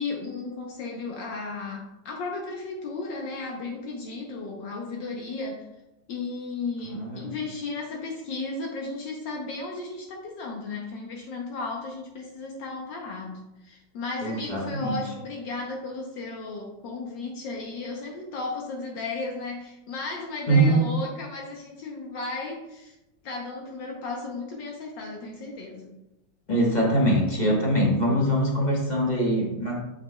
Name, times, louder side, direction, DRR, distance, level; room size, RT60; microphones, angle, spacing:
voice 1, 0.0-5.7 6.1-23.0 23.2-25.9, left 3 dB, 75° left, 0 dB, 1.4 m, -35 dB
voice 2, 6.8-7.3 14.2-15.0 20.5-20.9 26.5-29.8, right 1 dB, 30° left, -3 dB, 1.0 m, -23 dB
8.9 x 5.2 x 2.2 m, 0.94 s
omnidirectional pair, 2.0 m